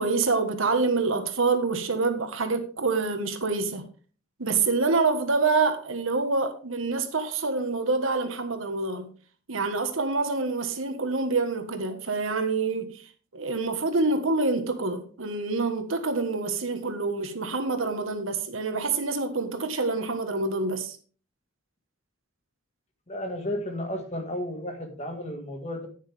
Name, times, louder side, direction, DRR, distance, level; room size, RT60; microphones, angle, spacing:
voice 1, 0.0-3.8 4.4-9.1 9.5-21.0, right 3 dB, 80° right, 1.4 m, -26 dB
voice 2, 23.1-25.9, left 1 dB, 30° left, 1.8 m, -33 dB
10.0 x 9.6 x 3.4 m
head